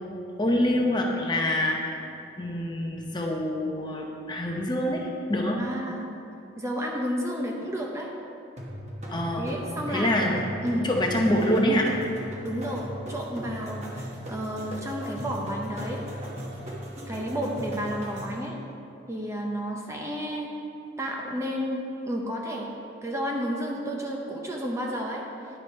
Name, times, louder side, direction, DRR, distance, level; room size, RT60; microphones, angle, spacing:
voice 1, 0.4-2.1 2.4-5.6 9.1-9.4 9.9-10.4 10.8-11.9, left 1 dB, 25° left, 0 dB, 0.7 m, -25 dB
voice 2, 5.6-6.1 6.6-8.1 9.4-10.2 10.6-10.9 12.4-16.0 17.1-18.5 19.1-20.5 21.0-22.7 23.0-25.2, equal, 15° right, -1 dB, 0.7 m, -31 dB
sound 1, 8.6-18.5, equal, 35° right, 1.2 m, -38 dB
9.9 x 4.8 x 5.5 m, 2.7 s
head